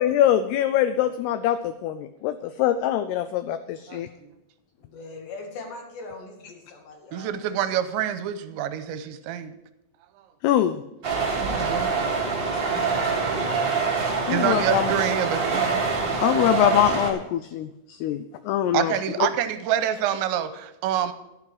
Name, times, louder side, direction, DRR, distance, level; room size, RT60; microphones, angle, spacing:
voice 1, 0.0-4.1 10.4-10.8 14.3-14.9 16.2-19.3, left 11 dB, 85° left, 11 dB, 2.3 m, -23 dB
voice 2, 3.9-4.3 7.1-9.6 11.4-11.9 12.7-14.0 14.3-15.8 16.1-16.5 18.7-21.1, right 10 dB, 85° right, 11 dB, 2.9 m, -28 dB
voice 3, 4.8-7.5 19.8-19.9, left 3 dB, 70° left, 1 dB, 4.3 m, -42 dB
sound 1, 11.0-17.1, right 4 dB, 45° right, 1.6 m, -25 dB
12.0 x 10.5 x 4.8 m, 0.92 s
omnidirectional pair, 5.3 m